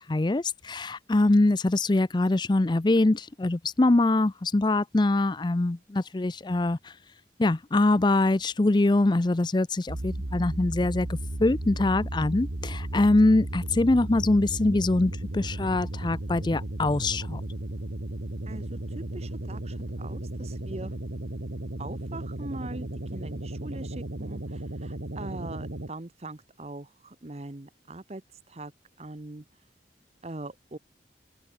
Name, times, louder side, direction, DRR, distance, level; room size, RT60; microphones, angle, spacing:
voice 1, 0.1-6.9 7.4-17.4, left 2 dB, 25° left, 0.5 m, -23 dB
sound 1, 9.9-25.9, right 1 dB, 85° right, 1.6 m, -35 dB
voice 2, 18.5-20.9 21.8-28.2 28.5-28.7 29.0-29.4 30.2-30.8, right 2 dB, 35° right, 1.0 m, -41 dB
open air
head